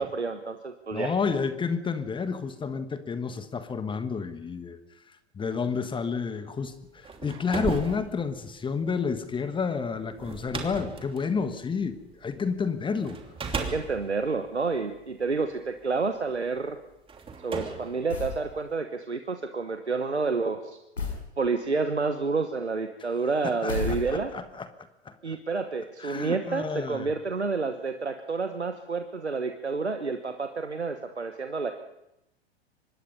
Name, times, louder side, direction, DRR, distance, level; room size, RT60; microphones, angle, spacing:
voice 1, 0.0-1.1 13.6-16.8 17.4-20.8 21.4-24.3 25.2-31.7, right 4 dB, 90° right, 7 dB, 1.3 m, -29 dB
voice 2, 0.9-4.8 5.3-13.2 23.4-24.7 25.0-25.4 26.0-27.1, left 5 dB, 15° left, 10 dB, 1.4 m, -30 dB
sound 1, 6.9-12.4 13.0-15.5 16.4-16.5 17.1-18.8, right 5 dB, 15° right, 2.9 m, -37 dB
sound 2, 18.1-18.5 21.0-21.3 23.7-24.5, left 3 dB, 85° left, 5.7 m, -32 dB
25.0 x 20.5 x 5.5 m, 0.87 s
figure-of-eight pair, 95°, 32 cm